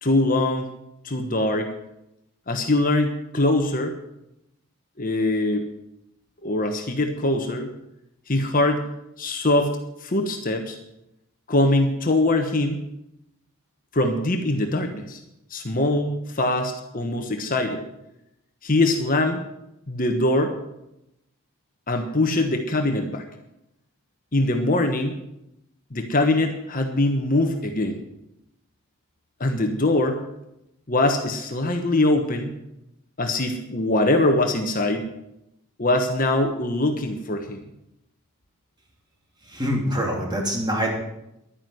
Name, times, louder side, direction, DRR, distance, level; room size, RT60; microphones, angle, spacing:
voice 1, 0.0-0.7 1.0-1.7 2.5-3.9 5.0-5.7 6.4-7.7 8.3-8.8 9.2-9.7 10.0-10.8 11.5-12.8 13.9-15.2 15.5-17.8 18.6-19.4 19.9-20.5 21.9-23.2 24.3-25.2 25.9-28.0 29.4-30.2 30.9-32.5 33.2-35.1 35.8-37.6, left 2 dB, 40° left, 5 dB, 1.2 m, -22 dB
voice 2, 39.5-40.9, equal, 20° right, 0 dB, 3.0 m, -25 dB
11.5 x 9.9 x 7.8 m, 0.86 s
head